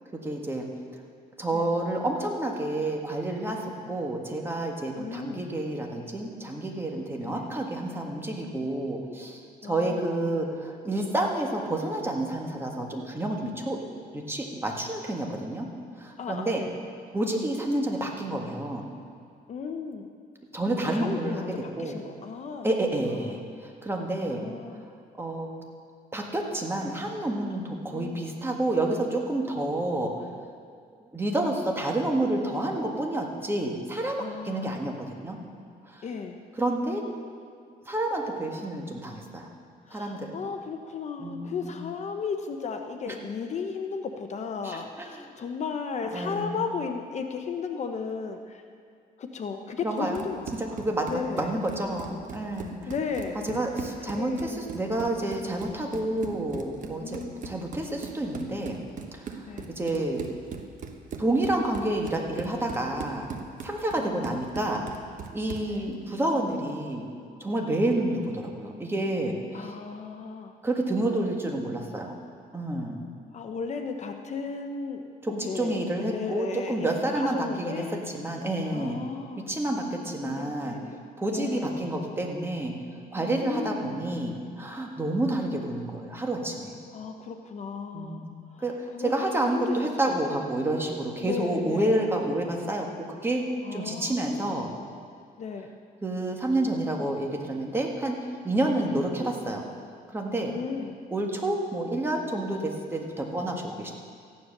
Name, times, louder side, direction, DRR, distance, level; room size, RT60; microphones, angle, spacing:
voice 1, 0.2-0.7 1.4-13.8 14.1-15.7 16.0-16.6 17.1-18.9 20.5-21.4 21.8-21.9 22.6-24.4 25.2-25.5 26.1-30.2 31.1-35.4 35.9-36.0 36.6-37.0 37.8-39.5 39.9-40.4 41.2-41.8 43.1-43.2 44.6-45.3 46.1-46.6 49.8-50.3 50.5-52.9 53.4-58.8 59.1-60.3 61.2-63.2 63.6-64.9 65.3-67.1 67.4-69.7 70.6-72.1 72.5-73.0 75.2-79.0 79.5-80.8 81.2-82.7 83.1-86.7 87.9-88.3 88.6-92.9 93.2-93.4 93.7-94.7 96.0-99.6 100.1-100.5 101.1-103.9, right 1 dB, 15° right, 1 dB, 1.7 m, -29 dB
voice 2, 5.0-5.4 7.2-7.4 9.6-10.0 16.2-16.8 19.5-20.1 20.9-22.7 23.0-23.3 24.3-24.9 27.9-28.2 34.2-35.0 36.0-36.4 39.9-48.6 49.2-50.8 51.1-51.5 52.9-53.4 54.1-54.7 57.0-57.5 59.5-59.7 64.0-64.4 65.7-65.9 69.5-70.6 73.3-75.0 75.3-78.0 78.7-79.5 80.2-81.0 81.3-81.9 83.2-84.0 86.9-88.2 88.5-88.6 88.9-89.8 90.1-90.2 91.2-92.1 93.6-94.6 95.4-95.7 98.8-98.9 100.5-100.9, left 5 dB, 45° left, 5 dB, 0.9 m, -35 dB
Run, 49.9-65.8, right 5 dB, 50° right, 1.2 m, -40 dB
14.5 x 10.0 x 6.6 m, 2.2 s
cardioid pair, 135°, 17 cm